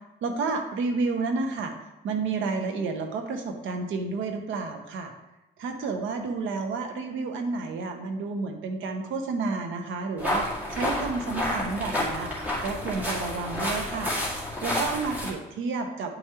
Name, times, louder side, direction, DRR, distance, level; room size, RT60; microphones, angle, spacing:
voice 1, 0.2-1.7 2.0-5.1 5.6-12.3 12.6-14.1 14.6-16.2, right 4 dB, 80° right, 5 dB, 1.0 m, -30 dB
sound 1, 10.2-15.3, left 1 dB, 10° right, 2.0 m, -30 dB
9.6 x 4.8 x 3.0 m, 0.96 s
cardioid pair, 90°, 20 cm